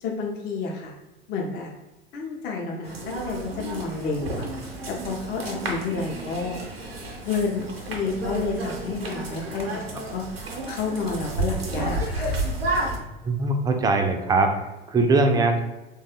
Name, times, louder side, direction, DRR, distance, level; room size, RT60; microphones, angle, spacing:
voice 1, 0.0-0.9 1.3-1.7 2.1-4.5 4.9-6.6 7.2-12.4, left 4 dB, 35° left, 0 dB, 0.6 m, -30 dB
sound 1, 2.8-13.0, right 2 dB, 85° right, 0.6 m, -31 dB
voice 2, 13.2-14.6 14.9-15.6, right 3 dB, 15° right, 5 dB, 0.4 m, -21 dB
3.2 x 2.3 x 2.8 m, 1.0 s
figure-of-eight pair, 75°, 29 cm